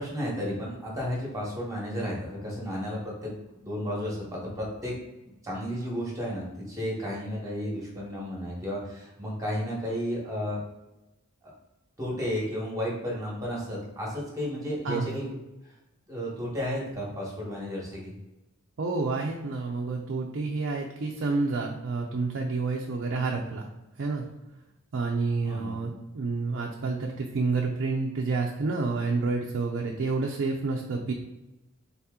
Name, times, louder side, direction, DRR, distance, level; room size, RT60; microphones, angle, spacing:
voice 1, 0.0-3.3 3.6-4.9 5.4-10.6 12.0-15.4 16.1-18.1 25.4-25.7, equal, 15° right, -4 dB, 1.1 m, -33 dB
voice 2, 14.8-15.2 18.8-23.7 24.0-24.3 24.9-31.1, right 3 dB, 60° right, 0 dB, 0.5 m, -29 dB
4.0 x 2.8 x 3.5 m, 0.98 s
head